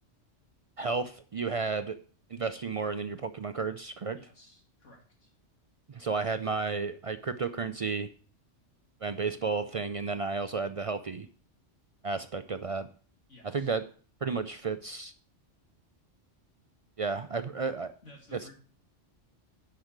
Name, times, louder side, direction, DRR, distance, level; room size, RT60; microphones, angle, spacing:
voice 1, 0.8-2.0 2.3-4.2 5.9-8.1 9.0-11.3 12.0-12.9 13.5-13.8 14.2-15.1 17.0-17.9 18.3-18.4, right 4 dB, 60° right, 10 dB, 0.3 m, -32 dB
voice 2, 4.1-5.3 6.1-6.2 13.3-13.8 17.6-17.7 18.0-18.5, left 1 dB, 80° left, 0 dB, 2.9 m, -55 dB
10.5 x 5.6 x 4.6 m, 0.42 s
omnidirectional pair, 1.2 m